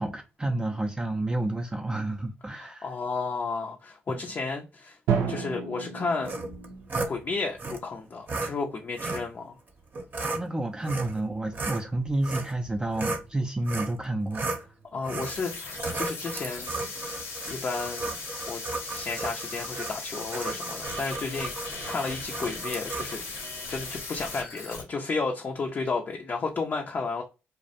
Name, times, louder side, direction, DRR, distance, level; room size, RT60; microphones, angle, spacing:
voice 1, 0.0-2.9 4.1-4.2 10.2-14.5, right 2 dB, 20° right, 0.4 m, -30 dB
voice 2, 2.5-5.0 5.3-6.3 7.1-9.5 14.9-16.7 17.1-17.2 17.4-18.1 18.5-23.2 23.7-27.2, left 4 dB, 45° left, 0.5 m, -32 dB
Drum, 5.1-7.0, right 6 dB, 80° right, 0.5 m, -30 dB
sound 1, 6.2-7.1 7.6-7.8 8.3-8.5 9.0-9.3 9.9-10.4 10.8-11.2 11.5-13.3 13.7-14.0 14.3-14.6 15.0-15.4 15.8-23.2, right 3 dB, 40° right, 0.7 m, -34 dB
sound 2, 15.2-24.8, left 3 dB, 80° left, 0.9 m, -38 dB
2.3 x 2.0 x 2.6 m
supercardioid pair, 55°, 5 cm